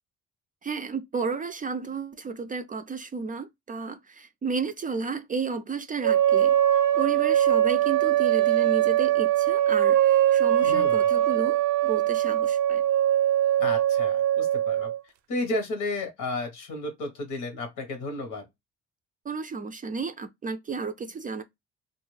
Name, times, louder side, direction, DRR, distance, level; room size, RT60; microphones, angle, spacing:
voice 1, 0.6-12.8 19.2-21.4, right 4 dB, 30° right, 0.3 m, -32 dB
sound 1, 6.0-15.0, right 11 dB, 85° right, 0.5 m, -22 dB
voice 2, 10.6-11.0 13.6-14.9 15.3-18.4, left 2 dB, 90° left, 1.2 m, -32 dB
2.5 x 2.3 x 3.1 m
cardioid pair, 90°, 30 cm